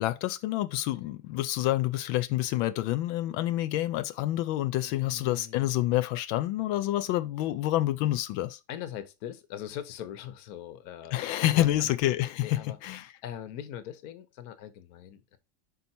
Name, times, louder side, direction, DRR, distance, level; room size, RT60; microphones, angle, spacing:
voice 1, 0.0-8.6 11.1-13.0, left 15 dB, 85° left, 1.3 m, -28 dB
voice 2, 4.8-5.9 8.7-11.9 12.4-15.4, left 10 dB, 60° left, 1.2 m, -42 dB
5.4 x 4.7 x 4.2 m
omnidirectional pair, 2.1 m